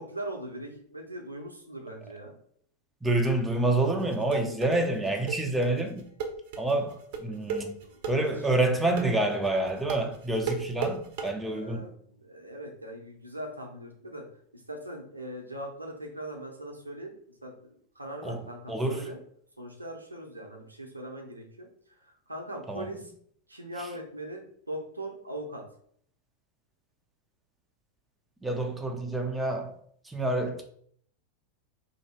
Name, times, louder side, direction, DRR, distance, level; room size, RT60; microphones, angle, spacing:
voice 1, 0.0-2.4 7.8-8.6 11.5-14.2 14.5-17.1 17.4-17.7 17.9-19.2 19.6-23.1 23.5-25.6, right 1 dB, 85° right, 0.7 m, -40 dB
voice 2, 3.0-6.0 6.6-7.7 8.1-11.8 18.2-18.4 18.7-19.0 22.7-22.9 28.4-29.8 30.1-30.6, right 2 dB, 10° right, 0.5 m, -27 dB
sound 1, 3.8-11.3, right 5 dB, 50° right, 0.6 m, -35 dB
2.8 x 2.7 x 4.2 m
figure-of-eight pair, 90°, 0 cm